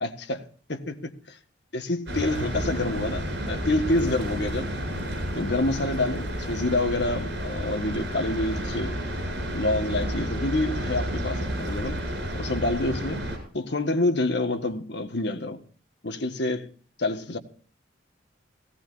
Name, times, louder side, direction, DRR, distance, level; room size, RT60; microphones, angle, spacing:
voice 1, 0.0-0.4 0.7-1.4 1.7-4.7 5.3-9.0 9.5-12.0 12.3-15.6 16.0-16.7 17.0-17.4, left 2 dB, 60° left, 1.6 m, -27 dB
sound 1, 2.1-13.4, equal, 65° right, 7.6 m, -31 dB
18.0 x 17.5 x 2.7 m
head